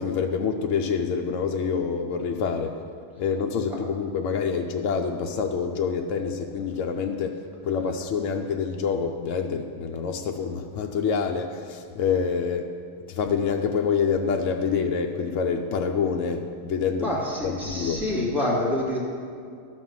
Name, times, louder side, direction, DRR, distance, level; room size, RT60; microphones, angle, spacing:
voice 1, 0.0-2.7 3.2-7.4 7.6-12.7 13.1-18.0, left 6 dB, 75° left, 3 dB, 1.0 m, -26 dB
voice 2, 17.0-19.0, left 1 dB, ahead, -7 dB, 2.4 m, -27 dB
12.5 x 4.4 x 7.3 m, 2.3 s
omnidirectional pair, 1.3 m